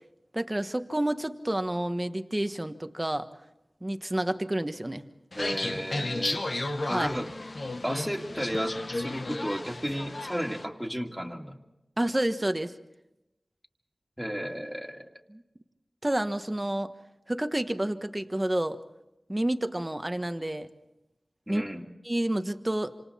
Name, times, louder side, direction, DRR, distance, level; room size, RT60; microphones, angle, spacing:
voice 1, 0.3-3.3 3.8-5.0 6.9-7.1 12.0-12.7 15.3-15.4 16.0-16.9 17.3-18.8 19.3-20.7 21.5-21.6 22.0-22.9, right 1 dB, 20° right, 9 dB, 1.3 m, -29 dB
sound 1, 5.3-10.6, left 2 dB, 60° left, 1.3 m, -33 dB
voice 2, 5.3-6.4 6.9-7.3 7.8-11.6 14.2-15.0 21.5-21.8, equal, ahead, 1 dB, 2.6 m, -33 dB
28.0 x 26.5 x 4.3 m, 0.93 s
wide cardioid pair, 50°, 0 cm